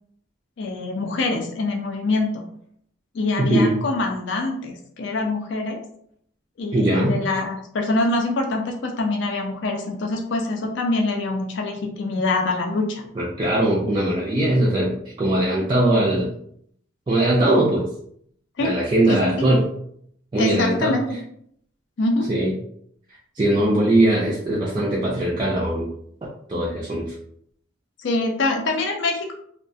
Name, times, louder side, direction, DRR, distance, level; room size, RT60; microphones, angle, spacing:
voice 1, 0.6-2.4 3.1-5.8 6.6-13.0 18.6-18.8 19.1-19.3 20.4-21.2 22.0-22.3 28.0-29.3, left 2 dB, 55° left, 2 dB, 0.4 m, -24 dB
voice 2, 3.4-3.7 6.7-7.2 13.2-16.3 17.1-17.9 18.6-19.7 20.3-20.9 22.3-22.5 23.4-25.9 26.5-27.1, right 1 dB, 20° right, -6 dB, 0.3 m, -20 dB
2.3 x 2.1 x 2.6 m, 0.67 s
head